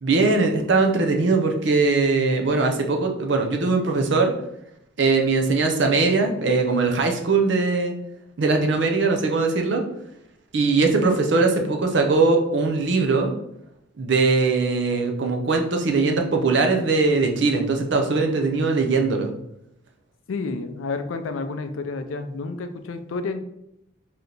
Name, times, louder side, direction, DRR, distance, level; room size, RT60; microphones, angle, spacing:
voice 1, 0.0-4.3 5.0-7.9 8.4-9.8 10.5-13.4 14.0-19.3, right 3 dB, 65° right, 3 dB, 0.6 m, -21 dB
voice 2, 20.3-23.4, left 3 dB, 90° left, 9 dB, 0.4 m, -30 dB
3.3 x 2.8 x 3.9 m, 0.80 s
head